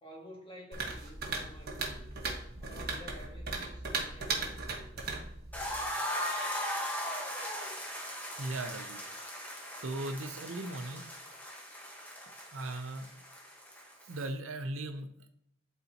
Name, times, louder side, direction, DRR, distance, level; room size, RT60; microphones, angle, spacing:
voice 1, 0.0-2.2 2.6-5.1, equal, 25° left, -1 dB, 1.8 m, -51 dB
sound 1, 0.7-5.9, right 3 dB, 50° right, 1.4 m, -37 dB
sound 2, 5.5-14.3, equal, 10° left, 1.2 m, -39 dB
voice 2, 8.4-9.0 9.8-11.1 12.5-13.2 14.0-15.3, right 2 dB, 75° right, 7 dB, 0.7 m, -38 dB
12.0 x 4.1 x 2.8 m, 0.73 s
head